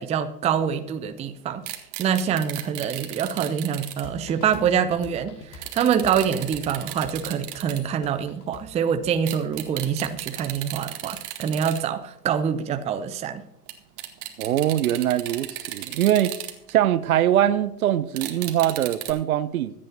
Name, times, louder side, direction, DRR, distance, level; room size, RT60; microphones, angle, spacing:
voice 1, 0.0-1.6 2.0-13.4, right 8 dB, 15° right, 0.6 m, -25 dB
sound 1, 1.6-4.0 5.6-7.8 9.3-11.8 12.0-12.1 13.7-13.8 14.0-17.0 18.1-19.1, right 14 dB, 35° right, 1.6 m, -35 dB
sound 2, 4.0-11.6, left 2 dB, 45° left, 2.4 m, -45 dB
voice 2, 14.4-16.3 16.7-19.7, right 12 dB, 60° right, 0.9 m, -22 dB
25.0 x 8.6 x 2.8 m
figure-of-eight pair, 95°, 48 cm